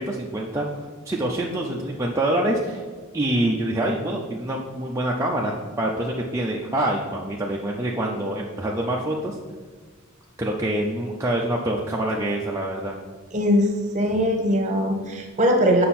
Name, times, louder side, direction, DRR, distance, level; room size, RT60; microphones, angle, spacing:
voice 1, 0.0-2.8 3.1-9.4 10.4-13.0, right 1 dB, 15° right, -3 dB, 0.5 m, -26 dB
voice 2, 13.3-13.7 13.9-15.9, equal, 35° right, 3 dB, 1.1 m, -20 dB
7.7 x 5.5 x 4.2 m, 1.4 s
head